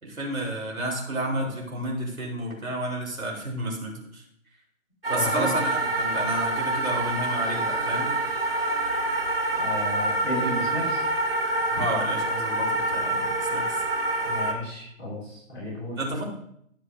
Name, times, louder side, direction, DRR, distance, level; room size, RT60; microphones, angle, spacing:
voice 1, 0.0-4.2 5.1-8.1 11.7-13.8 16.0-16.2, right 1 dB, 85° right, -2 dB, 3.6 m, -31 dB
sound 1, 5.0-14.5, right 2 dB, 45° right, 1.2 m, -26 dB
voice 2, 5.1-5.5 9.6-11.0 14.2-16.0, equal, 20° left, -11 dB, 3.3 m, -33 dB
14.5 x 7.3 x 2.6 m, 0.71 s
figure-of-eight pair, 175°, 41 cm